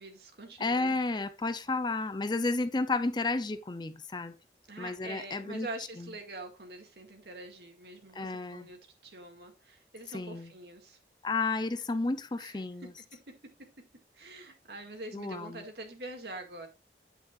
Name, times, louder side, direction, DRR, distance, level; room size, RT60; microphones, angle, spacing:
voice 1, 0.0-0.9 4.7-11.0 12.4-12.6 14.1-16.7, right 2 dB, 70° right, 2.0 m, -45 dB
voice 2, 0.6-4.3 4.8-5.7 6.0-6.1 8.1-8.7 10.1-10.5 11.2-12.9 15.1-15.6, left 3 dB, 25° left, 0.5 m, -32 dB
8.8 x 8.2 x 2.4 m
head